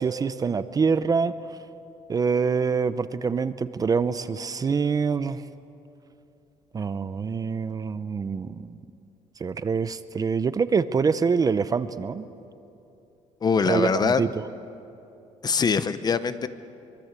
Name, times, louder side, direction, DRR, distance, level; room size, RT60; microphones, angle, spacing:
voice 1, 0.0-1.3 2.1-5.4 6.7-8.8 9.4-12.2 13.7-14.3, right 5 dB, 30° right, 13 dB, 0.7 m, -25 dB
voice 2, 13.4-14.2 15.4-16.5, left 5 dB, 30° left, 13 dB, 0.8 m, -23 dB
24.5 x 24.0 x 8.3 m, 2.8 s
cardioid pair, 135°, 13 cm